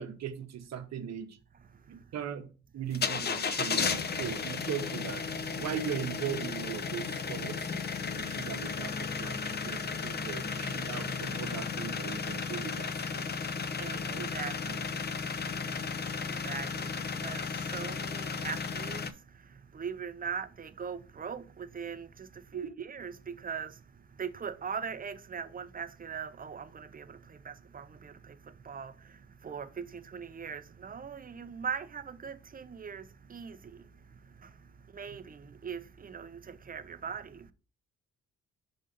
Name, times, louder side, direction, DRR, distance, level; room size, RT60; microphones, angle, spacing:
voice 1, 0.0-1.4 1.9-2.5 2.7-5.3 5.5-7.7 8.2-13.3 13.9-14.3 14.6-14.8 22.5-22.7 35.0-35.2, right 8 dB, 60° right, 0.9 m, -39 dB
sound 1, 2.9-19.1, left 5 dB, 35° left, 0.6 m, -34 dB
voice 2, 13.8-14.9 15.7-23.8 24.2-33.8 34.1-34.6 34.9-37.5, right 6 dB, 30° right, 0.6 m, -41 dB
5.4 x 3.8 x 5.2 m
cardioid pair, 90°, 30 cm